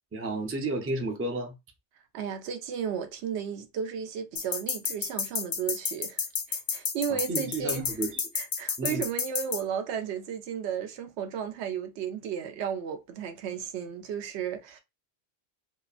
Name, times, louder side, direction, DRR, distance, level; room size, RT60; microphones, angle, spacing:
voice 1, 0.1-1.5 7.1-8.2 8.8-9.1, right 2 dB, 20° right, 0.3 m, -32 dB
voice 2, 2.1-7.9 8.3-14.8, right 8 dB, 85° right, 0.9 m, -34 dB
sound 1, 4.4-9.6, left 6 dB, 60° left, 0.3 m, -30 dB
2.7 x 2.4 x 2.3 m
omnidirectional pair, 1.1 m